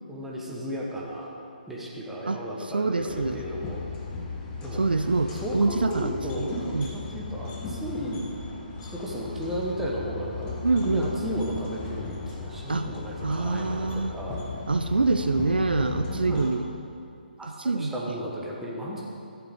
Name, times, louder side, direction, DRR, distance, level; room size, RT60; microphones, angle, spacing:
voice 1, 0.1-1.3 1.7-3.8 4.6-5.0 5.4-8.2 8.8-14.4 15.7-16.5 17.4-19.0, equal, 5° right, -4 dB, 1.2 m, -34 dB
voice 2, 2.3-3.4 4.8-6.9 10.6-11.1 12.7-12.9 13.2-14.2 14.7-16.7 17.4-17.9, right 3 dB, 70° right, 9 dB, 0.4 m, -26 dB
sound 1, 3.1-16.5, left 4 dB, 15° left, 1.1 m, -36 dB
13.5 x 8.2 x 3.7 m, 2.5 s
figure-of-eight pair, 140°, 5 cm